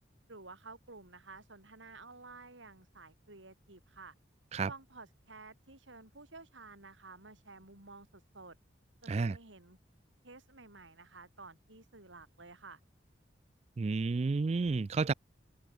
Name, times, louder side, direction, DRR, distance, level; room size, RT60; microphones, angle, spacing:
voice 1, 0.3-4.1 4.7-8.6 9.0-9.8 10.2-12.8, right 3 dB, 85° right, 4.9 m, -52 dB
voice 2, 9.1-9.4 13.8-15.1, right 4 dB, 35° right, 0.3 m, -31 dB
head